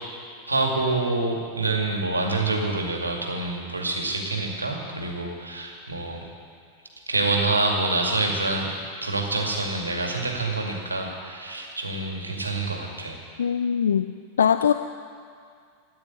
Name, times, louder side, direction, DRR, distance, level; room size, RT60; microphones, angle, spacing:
voice 1, 0.5-6.2 7.1-8.8 9.0-13.2, right 2 dB, 80° right, 1 dB, 2.3 m, -26 dB
voice 2, 13.4-14.1 14.4-14.7, left 8 dB, 65° left, 10 dB, 0.4 m, -21 dB
14.0 x 9.5 x 9.2 m, 2.2 s
figure-of-eight pair, 90°, 0 cm